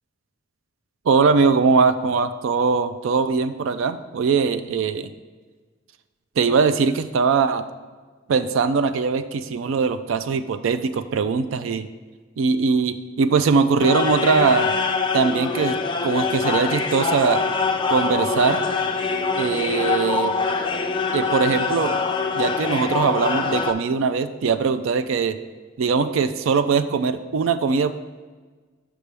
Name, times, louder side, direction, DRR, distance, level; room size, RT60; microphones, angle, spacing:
voice 1, 1.1-5.1 6.4-7.6 8.3-11.9 12.4-14.7 15.1-15.8 16.0-17.4 17.9-18.6 19.4-20.3 21.1-22.0 22.3-25.4 25.8-27.9, right 5 dB, 75° right, 11 dB, 0.4 m, -21 dB
sound 1, 13.8-23.7, left 4 dB, 25° left, 0.4 m, -24 dB
6.6 x 6.1 x 3.4 m, 1.4 s
head